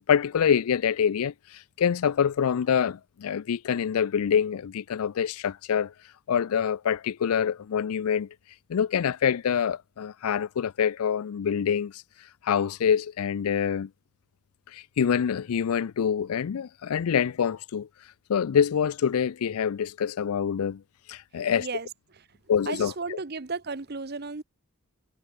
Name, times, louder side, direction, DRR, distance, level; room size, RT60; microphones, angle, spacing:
voice 1, 0.1-5.9 6.3-8.3 8.7-12.0 12.4-13.9 14.7-17.9 18.3-20.8 21.1-21.7 22.5-23.2, left 7 dB, 85° left, 0.4 m, -26 dB
voice 2, 21.5-21.9 22.7-24.4, right 4 dB, 45° right, 0.9 m, -34 dB
head